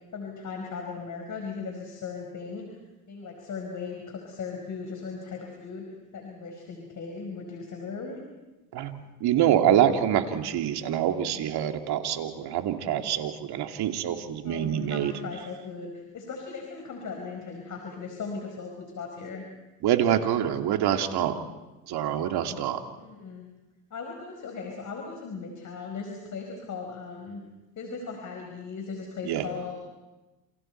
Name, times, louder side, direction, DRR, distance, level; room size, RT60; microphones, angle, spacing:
voice 1, 0.1-2.8 3.1-8.2 12.4-12.6 14.4-19.5 23.0-23.4 23.9-27.4 27.7-29.8, left 5 dB, 45° left, 2 dB, 4.8 m, -38 dB
voice 2, 8.7-15.1 19.8-21.4 21.9-22.8 29.2-29.5, right 10 dB, 60° right, 5 dB, 2.5 m, -25 dB
28.5 x 28.5 x 4.5 m, 1.1 s
supercardioid pair, 85°, 43 cm